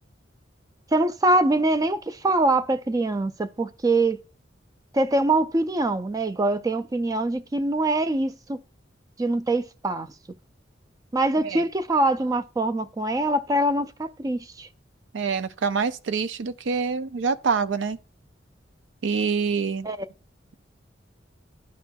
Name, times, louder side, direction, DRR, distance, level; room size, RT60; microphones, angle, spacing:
voice 1, 0.9-4.2 4.9-8.6 9.2-10.1 11.1-14.7 19.8-20.0, right 2 dB, 20° right, 0.4 m, -23 dB
voice 2, 15.1-18.0 19.0-19.9, right 5 dB, 85° right, 0.5 m, -26 dB
11.0 x 4.3 x 2.2 m
head